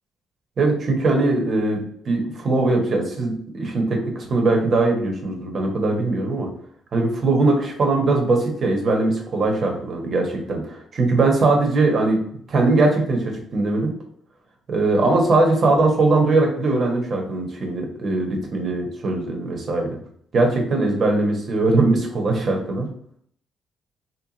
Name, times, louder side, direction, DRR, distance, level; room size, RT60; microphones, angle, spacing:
voice 1, 0.6-6.5 6.9-12.2 12.5-13.9 14.7-20.0 20.3-22.9, right 2 dB, 50° right, 1 dB, 1.2 m, -20 dB
3.2 x 3.1 x 4.0 m, 0.64 s
cardioid pair, 90°, 0 cm